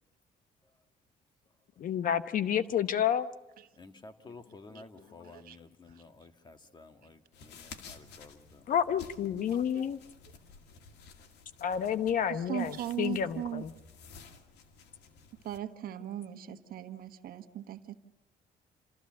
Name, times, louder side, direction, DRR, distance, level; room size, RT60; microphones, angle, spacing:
voice 1, 1.8-3.3 8.7-10.0 11.6-13.7, left 9 dB, 55° left, 12 dB, 0.9 m, -30 dB
voice 2, 3.8-8.7, left 3 dB, 25° left, 7 dB, 1.7 m, -52 dB
voice 3, 5.2-5.6 5.9-6.0 9.7-9.8 12.3-13.6 15.4-18.0, right 11 dB, 60° right, 8 dB, 1.3 m, -38 dB
sound 1, 7.3-15.6, left 5 dB, 80° left, 2.1 m, -53 dB
28.0 x 14.0 x 7.5 m, 1.1 s
cardioid pair, 110°, 17 cm